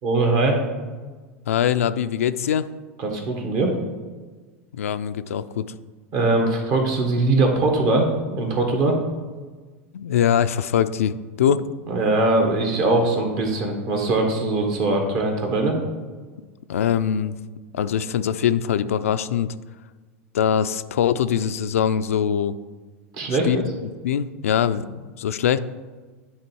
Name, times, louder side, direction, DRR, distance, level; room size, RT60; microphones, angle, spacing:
voice 1, 0.0-0.6 3.0-3.7 6.1-9.0 11.9-15.7 23.1-23.6, right 2 dB, 55° right, 2 dB, 1.7 m, -21 dB
voice 2, 1.5-2.7 4.7-5.6 9.9-11.6 16.7-17.3 17.7-19.5 20.3-22.5 23.4-23.6 24.0-25.6, left 9 dB, 85° left, 12 dB, 0.3 m, -22 dB
9.5 x 3.5 x 4.5 m, 1.4 s
hypercardioid pair, 100°, 7 cm